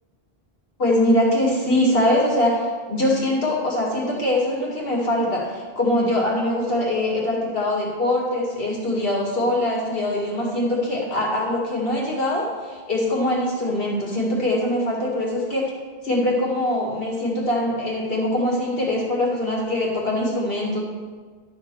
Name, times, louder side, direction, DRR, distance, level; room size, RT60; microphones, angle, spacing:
voice 1, 0.8-15.7 16.0-20.8, left 1 dB, 65° left, -4 dB, 2.4 m, -22 dB
12.0 x 5.2 x 5.6 m, 1.5 s
omnidirectional pair, 1.0 m